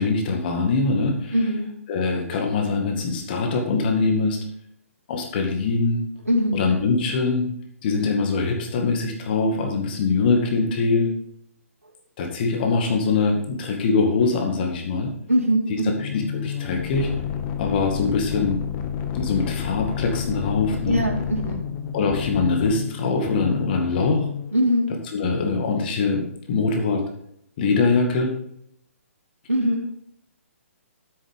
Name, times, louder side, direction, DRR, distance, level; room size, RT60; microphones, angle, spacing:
voice 1, 0.0-1.3 1.9-4.4 5.1-6.0 6.5-7.4 7.8-11.1 12.2-15.1 16.0-17.1 17.6-18.6 19.1-21.0 21.9-24.2 25.1-27.0 27.6-28.3, left 4 dB, 40° left, 2 dB, 2.1 m, -23 dB
voice 2, 1.3-1.7 6.3-6.6 15.3-16.0 20.9-21.7 24.5-24.9 29.5-29.8, equal, 90° right, -4 dB, 2.6 m, -22 dB
sound 1, 15.9-24.5, left 8 dB, 25° left, 1.1 m, -30 dB
10.0 x 8.6 x 3.7 m, 0.71 s
figure-of-eight pair, 130°, 8 cm